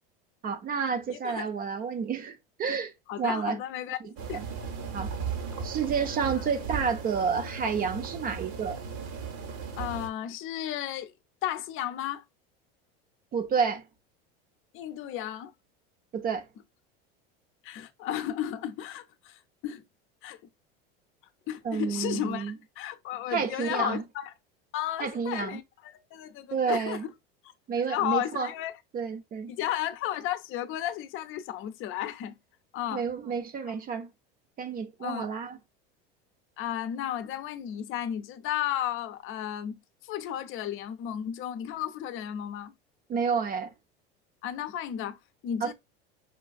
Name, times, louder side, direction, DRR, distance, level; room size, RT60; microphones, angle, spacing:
voice 1, 0.4-3.6 4.0-4.4 4.9-5.1 5.6-8.8 13.3-13.8 16.1-16.5 21.6-22.5 23.3-24.0 25.0-25.6 26.5-27.1 27.7-28.5 28.9-29.5 32.9-34.1 34.6-35.6 43.1-43.7 45.6-45.7, right 6 dB, 30° right, 0.5 m, -30 dB
voice 2, 1.1-1.5 3.1-4.0 4.3-4.4 6.4-6.5 9.8-11.1 11.4-12.2 14.7-15.5 17.6-19.8 20.2-20.4 21.5-24.3 24.7-27.0 27.9-28.7 29.5-32.4 32.7-33.0 35.0-35.3 36.6-42.7 44.4-45.2 45.4-45.7, left 11 dB, 45° left, 0.6 m, -33 dB
sound 1, 4.2-10.1, right 5 dB, 50° right, 1.0 m, -36 dB
5.2 x 2.4 x 2.3 m
hypercardioid pair, 100°, 30 cm